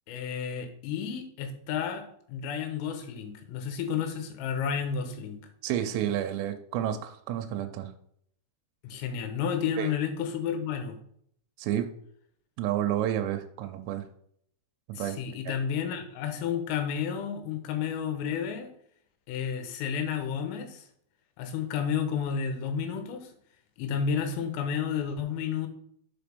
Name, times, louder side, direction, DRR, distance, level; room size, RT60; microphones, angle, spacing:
voice 1, 0.1-5.4 8.8-11.0 15.0-18.7 19.3-20.9 21.4-23.3 23.8-25.7, left 7 dB, 85° left, 6 dB, 3.7 m, -31 dB
voice 2, 5.6-7.9 9.8-9.9 11.6-11.9 12.6-14.0 14.9-15.2 15.5-15.6, right 11 dB, 85° right, 6 dB, 3.3 m, -30 dB
7.2 x 5.1 x 5.2 m, 0.67 s
omnidirectional pair, 5.7 m